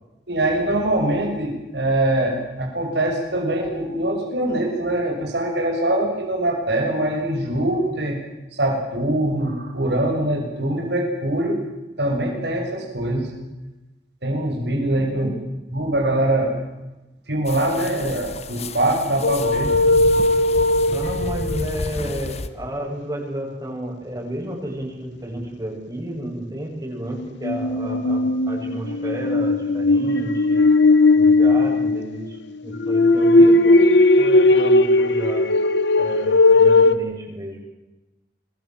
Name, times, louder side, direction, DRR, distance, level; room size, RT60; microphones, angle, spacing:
voice 1, 0.3-8.2 8.5-11.6 12.0-13.3 14.2-15.3 15.7-16.6 17.3-19.7, right 1 dB, 75° right, 1 dB, 6.9 m, -23 dB
sound 1, 17.5-22.5, left 2 dB, 40° left, 1.5 m, -32 dB
sound 2, 19.2-21.9 27.2-32.2 32.7-36.9, left 2 dB, 85° left, 1.5 m, -17 dB
voice 2, 20.9-30.7 31.1-35.5 36.0-37.6, right 1 dB, 20° right, 0 dB, 7.8 m, -32 dB
26.5 x 22.0 x 7.7 m, 1.0 s
head